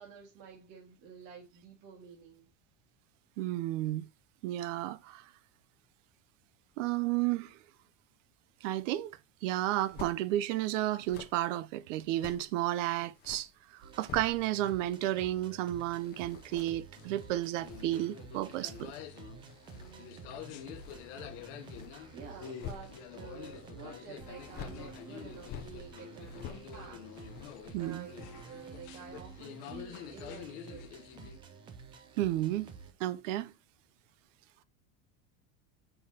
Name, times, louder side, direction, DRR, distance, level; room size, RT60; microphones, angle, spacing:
voice 1, 0.0-2.5 19.7-20.8 22.1-27.4 27.8-31.1, right 5 dB, 45° right, 1.9 m, -50 dB
voice 2, 3.4-4.1 4.4-5.2 6.8-7.6 8.6-13.5 13.7-18.9 27.7-28.1 32.2-32.7 33.0-33.5, right 14 dB, 75° right, 0.7 m, -32 dB
sound 1, 9.8-10.2 10.9-12.5 13.0-14.7 15.0-23.4 24.4-28.2 28.6-28.7, left 8 dB, 25° left, 0.6 m, -50 dB
sound 2, 13.8-32.9, right 5 dB, 15° right, 0.3 m, -51 dB
sound 3, 17.0-31.4, left 9 dB, 60° left, 1.0 m, -48 dB
6.4 x 5.6 x 2.8 m
cardioid pair, 175°, 38 cm